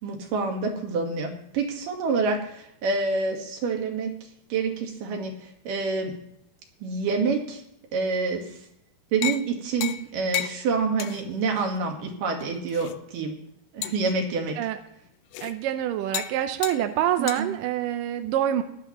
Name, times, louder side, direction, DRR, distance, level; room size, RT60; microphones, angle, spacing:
voice 1, 0.0-4.2 4.5-6.1 6.8-7.6 7.9-8.5 9.1-13.3 13.7-14.6 17.2-17.5, right 4 dB, 65° right, 2 dB, 3.0 m, -27 dB
sound 1, 9.2-9.5 9.8-10.1 10.3-10.6 11.0-11.2 11.6-11.7 12.4-12.9 13.8-14.1 15.3-15.5 16.1-16.4 16.6-16.8 17.3-17.4, left 13 dB, 80° left, 2.1 m, -32 dB
voice 2, 15.4-18.6, right 11 dB, 80° right, 7 dB, 2.0 m, -26 dB
17.5 x 11.5 x 3.1 m, 0.74 s
omnidirectional pair, 4.5 m